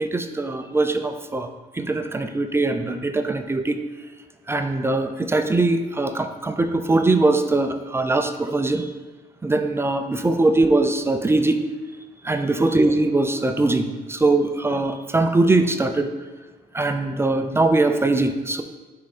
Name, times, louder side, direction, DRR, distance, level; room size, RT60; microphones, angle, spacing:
voice 1, 0.0-1.5 1.7-3.8 4.5-8.9 9.4-11.6 12.2-16.1 16.7-18.6, right 2 dB, 15° right, 7 dB, 0.4 m, -21 dB
6.1 x 4.6 x 4.2 m, 1.3 s
cardioid pair, 110°, 17 cm